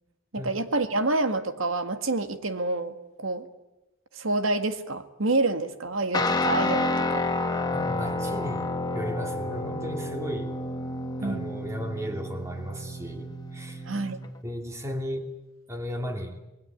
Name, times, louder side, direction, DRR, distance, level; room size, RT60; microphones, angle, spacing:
voice 1, 0.3-3.5 4.1-7.2 11.2-11.6 13.9-14.2, right 2 dB, 85° right, 9 dB, 1.9 m, -28 dB
Guitar, 6.1-14.3, left 2 dB, 20° left, 1.5 m, -30 dB
voice 2, 7.7-10.5 11.2-13.9 14.4-15.3 15.7-16.4, equal, 15° right, 4 dB, 2.7 m, -35 dB
27.0 x 20.5 x 9.3 m, 0.97 s
head